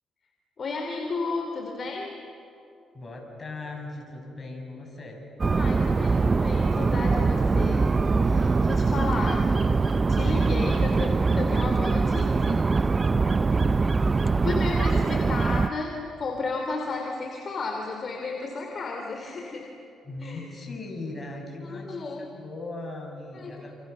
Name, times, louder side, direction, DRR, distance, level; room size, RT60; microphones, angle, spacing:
voice 1, 0.6-2.1 5.5-9.5 10.1-12.7 14.4-19.7 20.2-20.4 21.6-22.3 23.3-23.5, left 3 dB, 45° left, 2 dB, 3.1 m, -33 dB
voice 2, 2.9-5.3 10.3-11.1 13.5-14.0 14.9-15.3 20.0-23.7, left 2 dB, 30° left, 1 dB, 6.9 m, -39 dB
sound 1, 5.4-15.7, right 4 dB, 30° right, 0.5 m, -23 dB
28.5 x 28.0 x 6.9 m, 2.7 s
cardioid pair, 90°, 0 cm